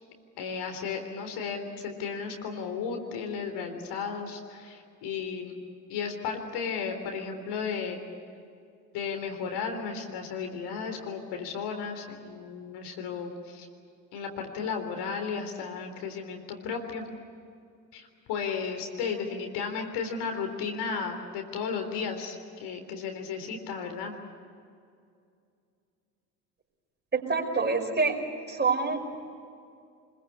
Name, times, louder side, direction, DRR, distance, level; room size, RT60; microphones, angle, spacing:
voice 1, 0.4-5.6 5.9-8.0 8.9-13.7 14.1-17.1 17.9-24.1, left 5 dB, 60° left, 4 dB, 3.9 m, -34 dB
voice 2, 27.1-28.2 28.5-29.2, right 4 dB, 20° right, 2 dB, 5.3 m, -26 dB
25.0 x 22.0 x 8.5 m, 2.4 s
figure-of-eight pair, 60°, 46 cm